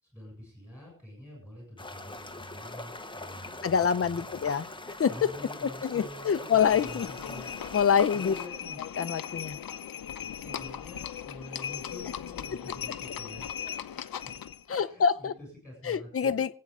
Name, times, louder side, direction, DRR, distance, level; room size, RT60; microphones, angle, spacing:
voice 1, 0.0-4.4 5.1-7.8 8.1-8.8 10.4-13.7 14.8-16.4, left 1 dB, 5° right, -1 dB, 7.4 m, -47 dB
sound 1, 1.8-8.5, left 2 dB, 15° left, 1.0 m, -42 dB
voice 2, 3.6-5.1 5.6-7.1 7.7-8.3 9.0-9.6 14.7-15.3 15.8-16.5, left 7 dB, 40° left, 11 dB, 0.7 m, -26 dB
Livestock farm animals working animals, 6.5-14.6, left 9 dB, 75° left, 0.8 m, -38 dB
26.0 x 8.7 x 3.8 m, 0.44 s
wide cardioid pair, 180°, 35 cm